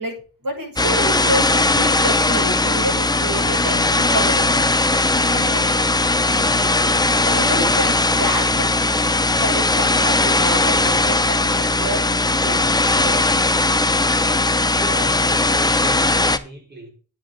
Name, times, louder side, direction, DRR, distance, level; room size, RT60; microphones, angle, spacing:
voice 1, 0.0-4.7 5.3-5.9 6.2-8.7 9.4-13.3, right 1 dB, 60° right, 7.0 m, -29 dB
sound 1, 0.8-16.4, left 2 dB, 10° left, 0.6 m, -18 dB
voice 2, 14.7-16.9, right 2 dB, 25° right, 5.1 m, -36 dB
10.0 x 9.5 x 4.0 m
wide cardioid pair, 110°, 38 cm